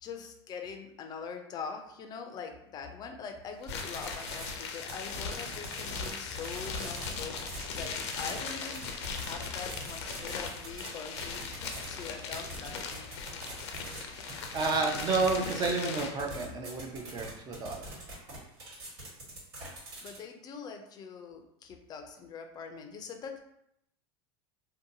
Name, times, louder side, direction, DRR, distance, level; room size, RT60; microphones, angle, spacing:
voice 1, 0.0-13.1 20.0-23.4, left 6 dB, 30° left, 5 dB, 0.4 m, -43 dB
sound 1, 3.6-16.3, left 5 dB, 85° left, 0.4 m, -39 dB
sound 2, 3.7-4.5 4.8-6.1 6.4-10.9 11.2-11.9 12.3-14.0 14.3-15.7 16.0-20.2, right 2 dB, 75° right, 1.5 m, -43 dB
voice 2, 14.1-17.8, right 3 dB, 30° right, 2 dB, 0.5 m, -31 dB
2.7 x 2.2 x 2.6 m, 0.77 s
supercardioid pair, 125°, 14 cm